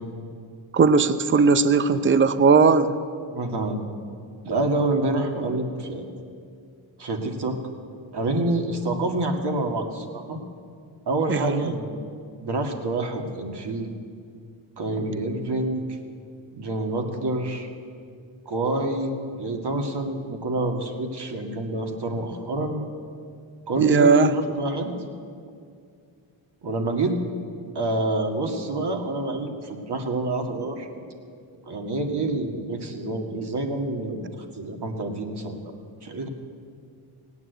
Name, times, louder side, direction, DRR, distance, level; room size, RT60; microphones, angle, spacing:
voice 1, 0.7-3.0 11.3-11.7 23.8-24.3, right 4 dB, 25° right, 12 dB, 0.7 m, -18 dB
voice 2, 3.3-3.8 4.4-6.1 7.0-7.6 8.1-10.4 11.1-12.0 12.4-13.9 14.8-15.8 16.5-17.7 18.5-19.1 19.4-22.8 23.7-24.9 26.6-27.1 27.7-30.9 31.7-35.6 36.0-36.3, right 2 dB, 50° right, 3 dB, 2.2 m, -27 dB
17.5 x 9.4 x 8.1 m, 2.3 s
cardioid pair, 70°, 49 cm